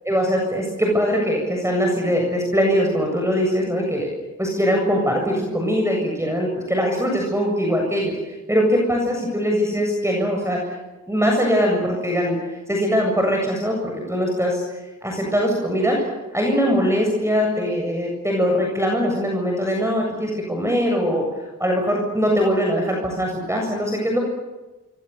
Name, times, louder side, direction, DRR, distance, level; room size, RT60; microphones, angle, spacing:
voice 1, 0.1-4.1 4.4-10.8 11.1-14.6 15.0-16.1 16.3-21.3 21.6-24.2, equal, 10° right, 0 dB, 7.6 m, -21 dB
28.0 x 23.0 x 7.1 m, 1.1 s
cardioid pair, 75°, 31 cm